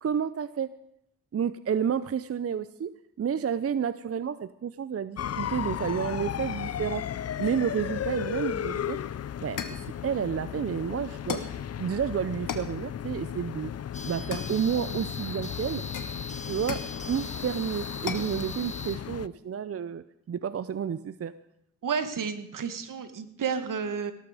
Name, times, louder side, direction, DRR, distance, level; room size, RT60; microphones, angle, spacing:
voice 1, 0.0-0.7 1.3-2.9 3.2-9.2 9.4-13.7 14.0-15.8 16.4-21.3, right 8 dB, 45° right, 15 dB, 0.6 m, -30 dB
sound 1, 5.2-19.3, left 9 dB, 50° left, 0.5 m, -35 dB
sound 2, 9.6-9.9 11.3-11.6 12.5-12.8 14.3-15.0 15.9-17.0 18.1-18.4, left 7 dB, 75° left, 1.4 m, -36 dB
sound 3, 13.9-19.0, left 3 dB, 20° left, 1.4 m, -41 dB
voice 2, 21.8-24.1, right 6 dB, 75° right, 10 dB, 1.5 m, -31 dB
18.0 x 12.5 x 4.9 m, 0.77 s
cardioid pair, 65°, 32 cm